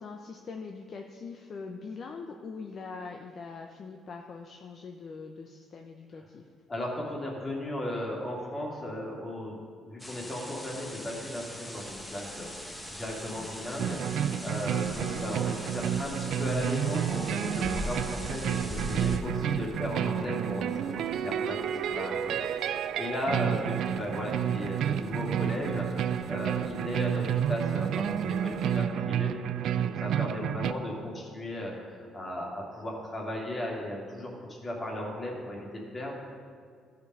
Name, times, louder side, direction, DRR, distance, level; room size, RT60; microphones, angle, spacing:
voice 1, 0.0-6.5 13.4-13.6 23.3-23.6, left 4 dB, 50° left, 3 dB, 0.7 m, -42 dB
voice 2, 6.7-22.5 23.0-29.3 29.7-34.3 34.6-36.1, left 1 dB, 25° left, -2 dB, 2.5 m, -36 dB
sound 1, 10.0-19.2, left 1 dB, 10° left, 1.0 m, -41 dB
sound 2, 11.7-28.8, right 4 dB, 50° right, 0.9 m, -51 dB
sound 3, 13.8-30.7, right 9 dB, 70° right, 0.4 m, -30 dB
13.5 x 5.3 x 5.5 m, 2.1 s
cardioid pair, 105°, 0 cm